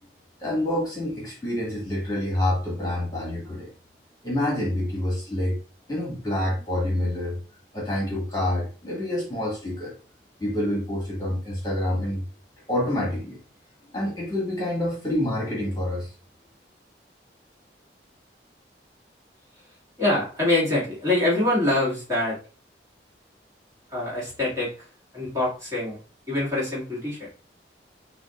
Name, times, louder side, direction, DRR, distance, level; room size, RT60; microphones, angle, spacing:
voice 1, 0.4-3.7 4.2-5.6 5.9-7.4 7.7-9.9 10.4-12.2 12.7-13.4 13.9-16.1, left 1 dB, 20° left, -4 dB, 1.9 m, -27 dB
voice 2, 20.0-22.4 23.9-24.7 25.1-26.0 26.3-27.3, left 2 dB, 20° right, -7 dB, 2.3 m, -24 dB
7.7 x 2.7 x 2.5 m, 0.36 s
head